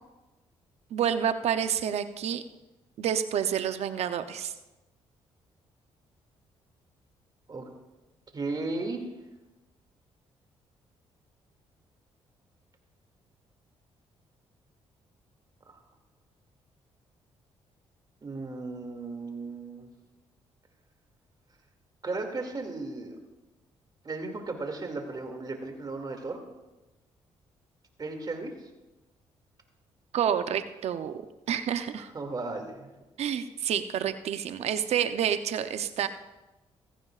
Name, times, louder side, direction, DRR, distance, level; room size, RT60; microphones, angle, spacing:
voice 1, 0.9-2.4 3.0-4.5 30.1-31.2 31.5-32.1 33.2-36.1, right 9 dB, 70° right, 10 dB, 0.7 m, -28 dB
voice 2, 8.3-9.1 15.7-15.8 18.2-19.9 22.0-23.2 24.0-26.4 28.0-28.5 32.0-32.9, right 3 dB, 40° right, 3 dB, 2.4 m, -35 dB
15.5 x 14.5 x 2.5 m, 1.1 s
supercardioid pair, 65°, 11 cm